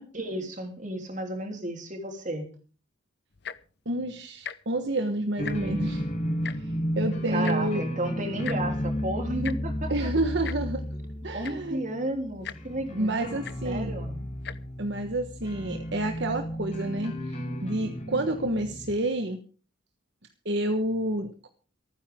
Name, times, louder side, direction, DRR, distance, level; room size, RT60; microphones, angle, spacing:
voice 1, 0.1-2.5 7.3-10.1 11.3-13.3 13.6-14.2, right 1 dB, 40° right, 4 dB, 3.5 m, -33 dB
Tick-tock, 3.3-3.7 4.4-4.6 4.9-5.0 5.3-5.8 6.4-6.6 7.4-7.6 8.4-8.6 9.4-9.6 10.4-10.6 11.2-11.3 11.4-11.7 12.4-12.6 13.4-13.6 14.4-14.6 15.3-15.4, left 8 dB, 55° left, 0.8 m, -37 dB
voice 2, 3.8-6.1 6.4-7.8 9.9-10.8 11.2-11.8 12.9-14.0 14.8-19.4 20.4-21.5, right 1 dB, 60° right, 6 dB, 1.3 m, -29 dB
sound 1, 5.4-18.9, equal, 35° left, 4.8 m, -33 dB
28.0 x 9.8 x 3.7 m, 0.38 s
head